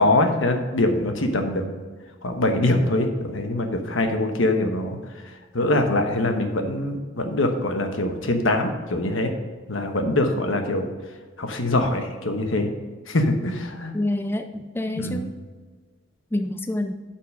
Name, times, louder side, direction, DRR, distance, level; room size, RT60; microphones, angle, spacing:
voice 1, 0.0-1.6 2.2-5.0 5.5-9.3 9.7-10.9 11.4-12.7 13.1-13.9 15.0-15.2, left 2 dB, 90° left, 5 dB, 1.2 m, -23 dB
voice 2, 13.9-15.3 16.3-17.0, left 1 dB, 10° left, 7 dB, 0.3 m, -27 dB
8.3 x 5.8 x 4.9 m, 1.4 s
head